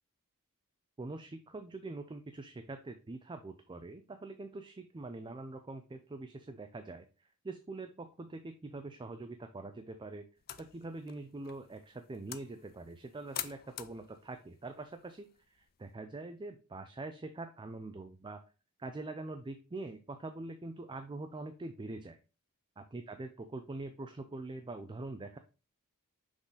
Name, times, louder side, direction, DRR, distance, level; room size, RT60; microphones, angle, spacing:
voice 1, 1.0-10.3 10.6-18.4 18.8-22.2 22.8-25.4, right 2 dB, 20° right, 8 dB, 0.4 m, -44 dB
sound 1, 10.4-15.9, left 12 dB, 45° left, 0.4 m, -48 dB
6.0 x 4.0 x 3.9 m, 0.33 s
head